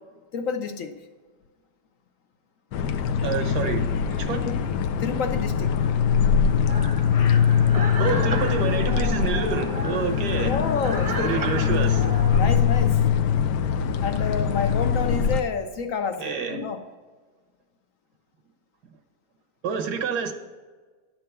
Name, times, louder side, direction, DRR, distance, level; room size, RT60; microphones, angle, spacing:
voice 1, 0.3-0.9 4.4-4.6 5.0-5.7 10.4-11.4 12.3-13.0 14.0-16.8, left 6 dB, 65° left, 6 dB, 0.8 m, -29 dB
sound 1, 2.7-15.4, left 7 dB, 90° left, 1.2 m, -22 dB
voice 2, 3.2-4.5 8.0-10.5 11.2-12.0 16.2-16.6 19.6-20.3, right 6 dB, 80° right, 6 dB, 1.5 m, -28 dB
sound 2, 6.7-12.4, right 3 dB, 30° right, 0.8 m, -34 dB
10.5 x 4.5 x 6.7 m, 1.4 s
omnidirectional pair, 1.8 m